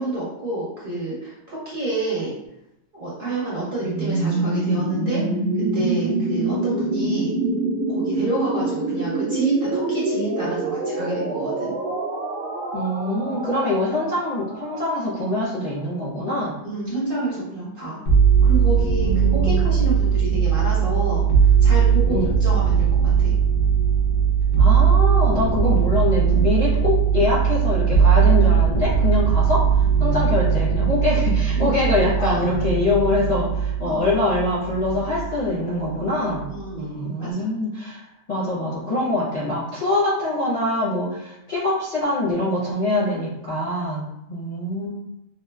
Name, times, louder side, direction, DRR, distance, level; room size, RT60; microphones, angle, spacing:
voice 1, 0.0-2.3 2.9-5.2 5.6-7.3 7.9-11.7 16.6-18.0 18.4-23.3 31.6-31.7 32.2-32.4 33.8-34.0 36.5-37.5, right 2 dB, 45° right, -7 dB, 0.9 m, -28 dB
sound 1, 3.8-15.6, right 2 dB, 75° right, 1.0 m, -26 dB
voice 2, 12.7-16.6 19.0-19.7 22.1-22.3 24.6-29.6 30.0-36.5 36.7-38.0 38.3-44.9, left 2 dB, 35° left, -11 dB, 0.7 m, -24 dB
sound 2, 18.1-35.5 35.8-36.6, right 7 dB, 90° left, 1.1 m, -19 dB
2.9 x 2.1 x 2.2 m, 0.87 s
omnidirectional pair, 1.5 m